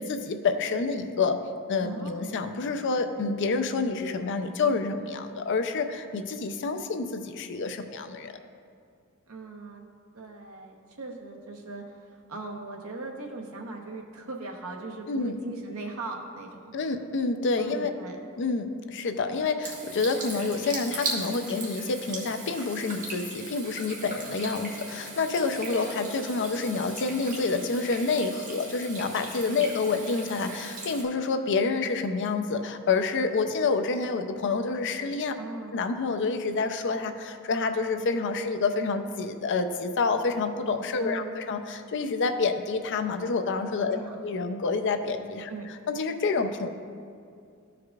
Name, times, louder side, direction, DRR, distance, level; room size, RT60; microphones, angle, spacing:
voice 1, 0.0-1.4 1.7-8.3 15.1-15.4 16.7-17.9 18.4-35.3 35.7-44.0 44.2-45.5 45.9-46.7, left 4 dB, 55° left, 8 dB, 0.5 m, -28 dB
voice 2, 1.8-2.3 9.3-9.8 10.1-16.7 17.6-18.2 24.4-24.6 29.4-29.6 35.3-35.8 41.0-41.5 43.9-44.3 45.5-45.7, right 3 dB, 75° right, 1 dB, 0.9 m, -39 dB
Water tap faucet / Sink (filling or washing), 19.6-31.0, right 2 dB, 40° right, 1.3 m, -38 dB
14.0 x 4.8 x 2.4 m, 2.3 s
head